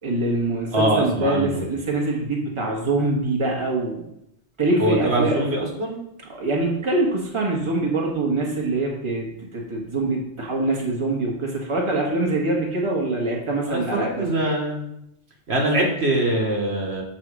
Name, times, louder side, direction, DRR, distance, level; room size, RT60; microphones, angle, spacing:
voice 1, 0.0-4.0 4.6-5.4 6.3-9.3 9.5-14.2, right 2 dB, 25° right, -2 dB, 1.5 m, -24 dB
voice 2, 0.7-1.6 4.8-6.0 13.7-14.8 15.5-17.0, right 1 dB, 70° right, 0 dB, 1.7 m, -23 dB
6.6 x 4.2 x 6.2 m, 0.80 s
omnidirectional pair, 1.1 m